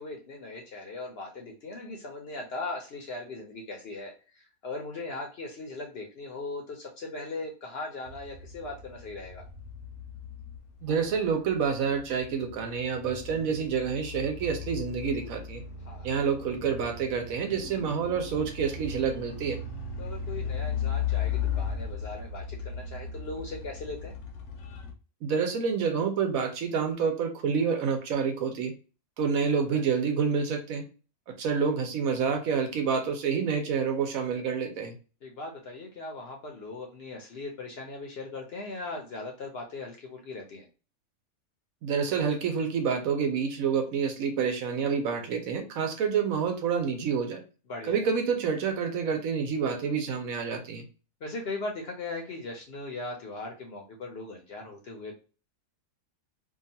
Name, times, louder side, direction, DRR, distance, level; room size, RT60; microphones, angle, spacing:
voice 1, 0.0-9.4 15.8-16.1 20.0-24.1 29.7-29.8 35.2-40.6 47.7-48.0 51.2-55.1, left 2 dB, 60° left, 1 dB, 0.7 m, -39 dB
sound 1, 8.1-24.9, left 6 dB, 75° left, 1.0 m, -37 dB
voice 2, 10.8-15.6 16.0-19.6 25.2-28.7 29.2-30.8 31.3-34.9 41.8-47.4 47.9-50.9, right 6 dB, 75° right, 4 dB, 1.1 m, -28 dB
2.8 x 2.3 x 2.6 m, 0.35 s
omnidirectional pair, 1.5 m